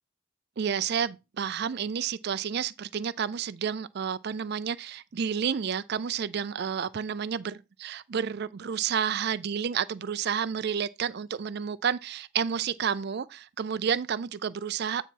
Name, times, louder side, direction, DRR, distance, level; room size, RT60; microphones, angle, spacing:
voice 1, 0.6-15.0, right 7 dB, 50° right, 0.4 m, -30 dB
9.2 x 3.9 x 4.5 m
head